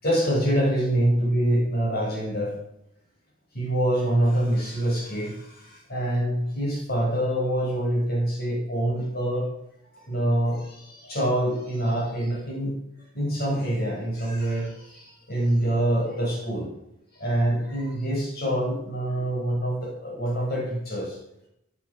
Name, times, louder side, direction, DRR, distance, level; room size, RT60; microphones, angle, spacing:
voice 1, 0.0-2.5 3.5-9.5 9.9-12.8 13.1-16.7 17.1-21.2, right 1 dB, 50° left, -3 dB, 7.2 m, -25 dB
19.0 x 9.5 x 6.4 m, 0.80 s
head